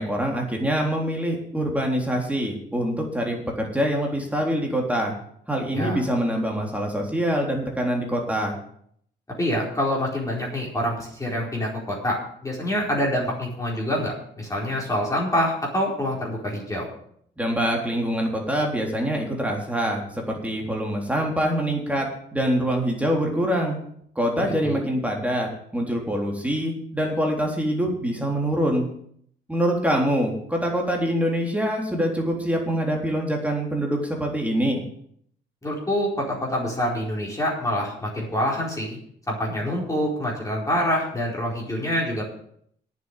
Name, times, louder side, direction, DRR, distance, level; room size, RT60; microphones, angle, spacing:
voice 1, 0.0-5.1 5.5-8.5 17.4-22.1 22.3-23.8 24.2-28.9 29.5-34.8, equal, 5° right, 0 dB, 3.7 m, -25 dB
voice 2, 9.4-16.9 24.4-24.8 35.6-39.0 39.3-42.2, equal, 15° left, -3 dB, 4.4 m, -26 dB
9.2 x 7.7 x 9.0 m, 0.66 s
cardioid pair, 90°, 20 cm